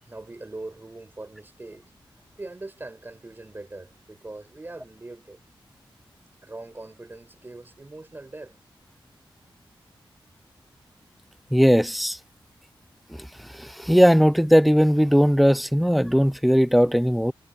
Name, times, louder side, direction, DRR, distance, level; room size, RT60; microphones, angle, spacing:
voice 1, 0.1-1.9 2.4-5.4 6.4-8.6, right 2 dB, 25° right, 4.7 m, -41 dB
voice 2, 11.5-12.2 13.6-17.3, equal, ahead, 0.4 m, -18 dB
wide cardioid pair, 135°, 9 cm